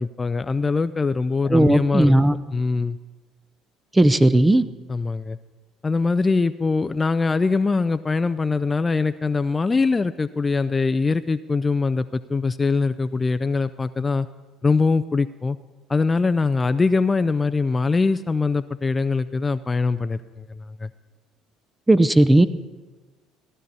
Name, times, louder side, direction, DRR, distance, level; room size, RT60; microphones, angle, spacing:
voice 1, 0.0-2.2 2.5-3.0 4.9-5.4 5.8-14.3 14.6-15.6 15.9-20.2 20.5-20.9, left 4 dB, 25° left, 12 dB, 0.4 m, -22 dB
voice 2, 1.5-2.4 3.9-4.7 21.9-22.5, right 1 dB, 15° right, 13 dB, 0.7 m, -16 dB
15.5 x 11.0 x 4.1 m, 1.2 s
hypercardioid pair, 65°, 0 cm